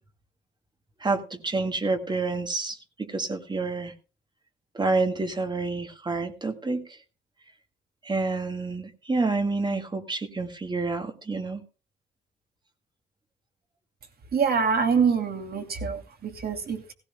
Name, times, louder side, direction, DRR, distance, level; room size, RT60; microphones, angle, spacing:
voice 1, 1.0-3.9 4.8-6.8 8.1-11.6, right 3 dB, 20° right, 1.8 m, -28 dB
voice 2, 14.3-16.9, right 6 dB, 50° right, 2.7 m, -25 dB
16.5 x 16.0 x 2.2 m
cardioid pair, 90°, 20 cm